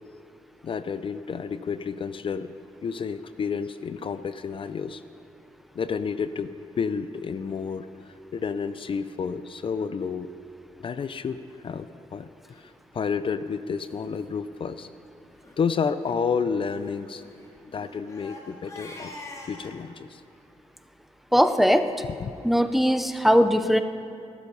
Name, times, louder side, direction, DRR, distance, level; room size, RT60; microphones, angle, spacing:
voice 1, 0.6-2.5 2.8-5.0 5.7-7.9 8.3-10.3 10.8-11.4 11.6-14.9 15.6-17.2 17.7-19.1 19.4-20.2 22.0-22.3, left 6 dB, 50° left, 12 dB, 0.5 m, -30 dB
Crying sobbing, 12.9-13.2 13.8-13.9 14.2-14.3 14.6-14.9 15.3-15.6 16.7-19.8, left 2 dB, 25° left, 2.6 m, -45 dB
voice 2, 21.3-21.9 22.4-23.8, equal, ahead, 9 dB, 0.6 m, -20 dB
20.5 x 12.0 x 5.4 m, 2.5 s
cardioid pair, 110°, 12 cm